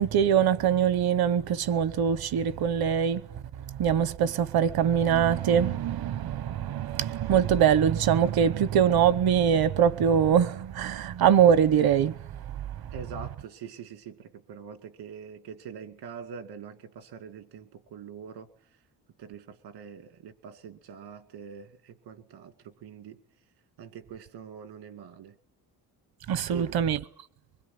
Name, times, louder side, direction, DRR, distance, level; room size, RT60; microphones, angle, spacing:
voice 1, 0.0-3.2 3.7-12.1 26.3-27.0, right 8 dB, 65° right, 1.0 m, -23 dB
voice 2, 12.9-18.5 19.2-23.2 23.8-25.4 26.5-26.8, right 7 dB, 80° right, 2.4 m, -44 dB
24.5 x 21.0 x 9.6 m
cardioid pair, 140°, 40 cm